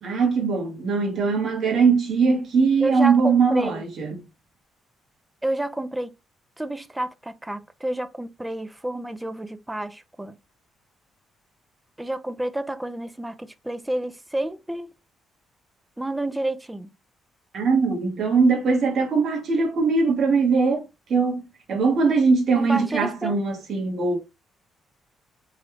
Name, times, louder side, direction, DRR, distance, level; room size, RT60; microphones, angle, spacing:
voice 1, 0.0-4.2 17.5-21.4 21.7-24.2, right 4 dB, 60° right, 1.3 m, -21 dB
voice 2, 2.8-3.8 5.4-6.1 6.6-10.3 12.0-14.9 16.0-16.9 22.5-23.4, right 1 dB, 10° right, 0.4 m, -30 dB
3.1 x 2.3 x 3.0 m
cardioid pair, 90°, 0 cm